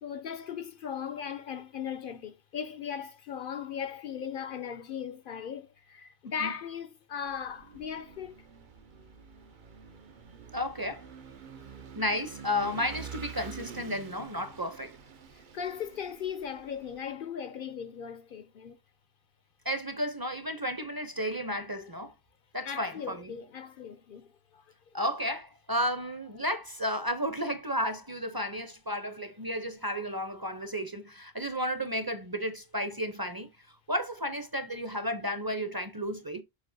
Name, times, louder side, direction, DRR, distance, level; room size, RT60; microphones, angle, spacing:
voice 1, 0.0-8.5 15.3-18.8 22.6-24.9, left 7 dB, 60° left, 0.7 m, -38 dB
Vehicle / Engine, 7.3-17.1, right 7 dB, 55° right, 0.8 m, -47 dB
voice 2, 10.5-11.1 11.9-15.0 19.6-22.1 22.5-23.3 24.9-36.4, equal, 25° right, 0.7 m, -33 dB
7.3 x 5.2 x 2.7 m
omnidirectional pair, 1.1 m